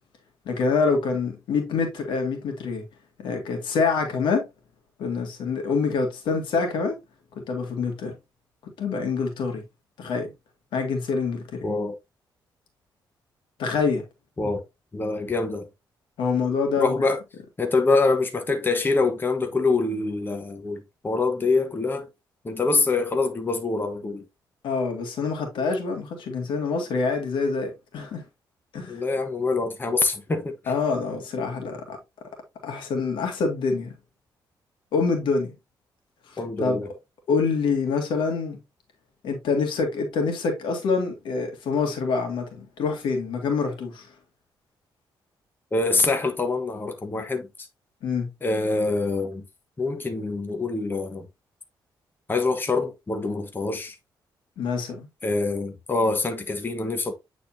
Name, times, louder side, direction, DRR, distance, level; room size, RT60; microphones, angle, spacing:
voice 1, 0.5-2.8 3.2-4.4 5.0-7.0 7.4-8.1 8.8-9.6 10.0-10.3 10.7-11.7 13.6-14.0 16.2-17.0 24.6-28.2 28.7-29.0 30.7-32.0 32.6-33.9 34.9-35.5 36.3-36.8 37.3-38.6 39.2-44.1 48.0-48.3 54.6-55.1, left 4 dB, 85° left, 2.0 m, -26 dB
voice 2, 11.6-11.9 14.4-14.6 14.9-15.7 16.8-17.2 17.6-22.1 22.4-24.2 28.9-30.5 36.4-36.9 45.7-47.7 48.4-49.4 49.8-51.3 52.3-54.0 55.2-57.1, left 3 dB, 25° left, 1.2 m, -25 dB
8.6 x 4.2 x 2.7 m
cardioid pair, 100°, 8 cm